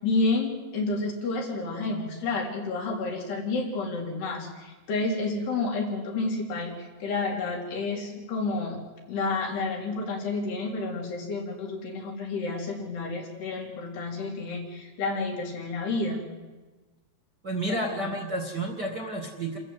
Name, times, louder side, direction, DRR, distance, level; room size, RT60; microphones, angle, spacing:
voice 1, 0.0-8.8 9.1-16.2 17.7-18.1, left 3 dB, 80° left, -1 dB, 5.8 m, -30 dB
voice 2, 17.4-19.6, right 1 dB, 35° right, 2 dB, 2.0 m, -31 dB
28.5 x 14.0 x 8.1 m, 1.2 s
omnidirectional pair, 4.7 m